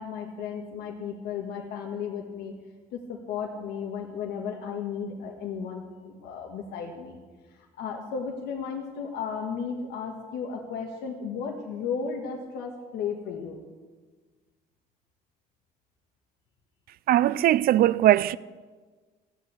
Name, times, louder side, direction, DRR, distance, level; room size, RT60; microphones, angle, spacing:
voice 1, 0.0-2.5 2.9-7.2 7.5-13.6, left 6 dB, 80° left, 1.7 m, -34 dB
voice 2, 17.1-18.4, right 13 dB, 60° right, 0.4 m, -20 dB
15.0 x 8.2 x 8.3 m
cardioid pair, 110°, 17 cm